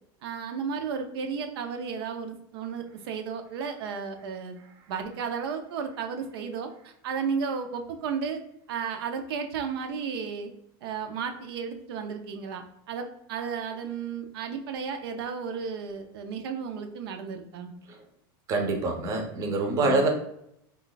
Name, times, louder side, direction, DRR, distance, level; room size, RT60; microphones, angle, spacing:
voice 1, 0.2-4.5 4.9-8.4 8.7-10.5 10.8-17.7 19.8-20.1, right 6 dB, 80° right, 5 dB, 0.5 m, -33 dB
voice 2, 18.5-20.1, right 3 dB, 25° right, 2 dB, 0.5 m, -25 dB
2.4 x 2.3 x 3.8 m, 0.76 s
supercardioid pair, 160°, 13 cm